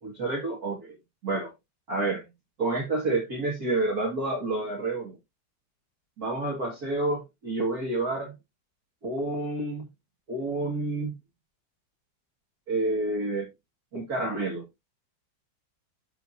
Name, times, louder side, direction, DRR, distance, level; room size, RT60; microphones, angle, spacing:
voice 1, 0.0-1.0 1.2-1.5 1.9-2.3 2.6-5.2 6.2-8.4 9.0-9.9 10.3-11.1 12.7-13.5 13.9-14.6, right 2 dB, 50° right, 2.3 m, -29 dB
14.0 x 4.7 x 2.6 m
omnidirectional pair, 2.1 m